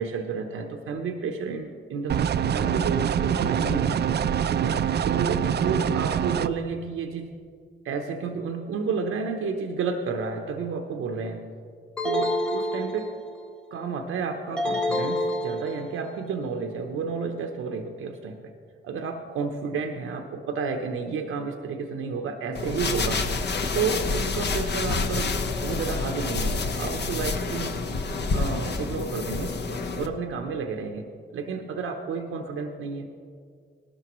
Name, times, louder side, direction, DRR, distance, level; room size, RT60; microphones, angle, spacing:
voice 1, 0.0-4.0 4.6-7.3 7.8-11.4 12.0-13.1 13.7-18.5 18.8-23.3 23.7-27.8 28.1-29.6 29.9-33.1, right 5 dB, 80° right, 4 dB, 0.9 m, -31 dB
sound 1, 2.1-6.5, right 8 dB, 55° right, 0.5 m, -25 dB
sound 2, 12.0-13.5 14.6-16.1, left 1 dB, 5° left, 1.3 m, -28 dB
sound 3, 22.5-30.1, left 4 dB, 55° left, 1.1 m, -28 dB
18.0 x 13.0 x 3.1 m, 2.2 s
cardioid pair, 65°, 21 cm